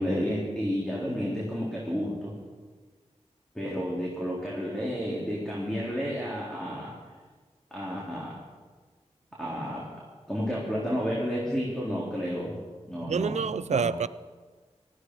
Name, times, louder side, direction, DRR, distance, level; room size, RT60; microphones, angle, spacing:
voice 1, 0.0-2.3 3.5-6.9 7.7-8.4 9.4-9.8 10.3-12.5 12.9-13.8, equal, 5° left, 3.9 m, -31 dB
voice 2, 13.1-14.1, right 6 dB, 70° right, 0.4 m, -27 dB
19.0 x 14.0 x 4.9 m
wide cardioid pair, 60°, 12 cm